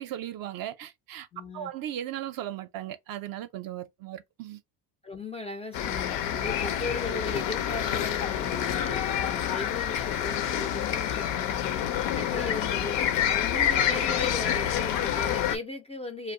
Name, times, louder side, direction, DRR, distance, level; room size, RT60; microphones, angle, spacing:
voice 1, 0.0-1.3 1.5-4.6, right 12 dB, 50° right, 0.5 m, -37 dB
voice 2, 1.3-1.7 5.0-11.8 12.2-13.0 13.3-16.3, left 2 dB, 15° left, 0.3 m, -37 dB
sound 1, 5.7-15.6, left 10 dB, 65° left, 0.6 m, -28 dB
2.3 x 2.1 x 3.7 m
hypercardioid pair, 75°, 48 cm